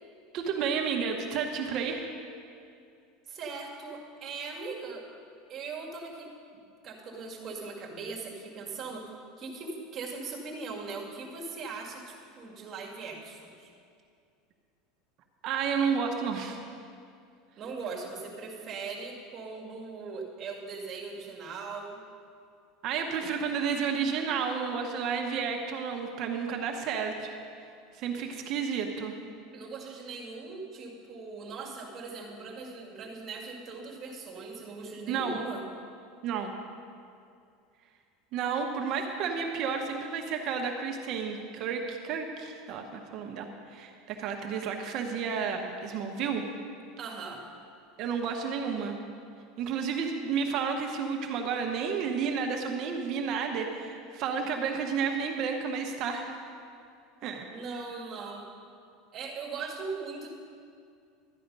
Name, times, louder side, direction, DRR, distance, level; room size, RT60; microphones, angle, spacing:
voice 1, 0.3-2.1 15.4-16.6 22.8-27.4 27.9-29.2 35.1-35.4 36.2-36.5 38.3-46.5 48.0-49.0 49.6-56.5 57.2-57.4, right 6 dB, 40° right, 3 dB, 1.0 m, -31 dB
voice 2, 3.3-5.0 5.5-6.3 6.8-13.7 17.6-22.0 29.5-35.6 47.0-47.4 57.5-58.5 59.1-60.3, right 4 dB, 25° right, -2 dB, 2.0 m, -40 dB
12.5 x 10.0 x 5.4 m, 2.4 s
supercardioid pair, 155°, 0 cm